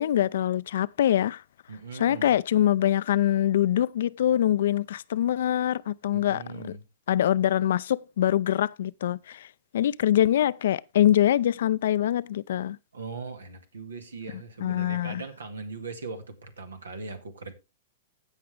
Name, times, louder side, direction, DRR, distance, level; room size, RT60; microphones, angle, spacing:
voice 1, 0.0-1.4 1.9-6.6 7.1-9.5 9.7-12.8 14.3-15.2, left 11 dB, 70° left, 0.4 m, -24 dB
voice 2, 1.7-2.3 6.1-6.8 12.9-17.5, right 4 dB, 90° right, 1.9 m, -39 dB
16.0 x 5.8 x 3.4 m
hypercardioid pair, 115°, 0 cm